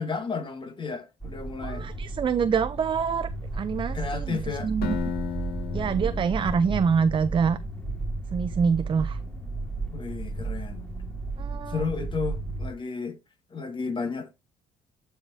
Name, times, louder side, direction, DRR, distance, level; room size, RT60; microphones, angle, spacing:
voice 1, 0.0-1.9 3.9-4.7 9.9-10.9 11.7-13.2 13.5-14.3, left 4 dB, 30° left, 1.8 m, -32 dB
sound 1, 1.2-12.7, right 3 dB, 5° left, 2.7 m, -33 dB
voice 2, 1.6-4.9 5.7-7.6 8.3-9.2 11.4-11.8, right 6 dB, 30° right, 0.5 m, -26 dB
Acoustic guitar, 4.8-7.8, left 7 dB, 65° left, 1.3 m, -35 dB
14.5 x 4.9 x 2.7 m
cardioid pair, 110°, 17 cm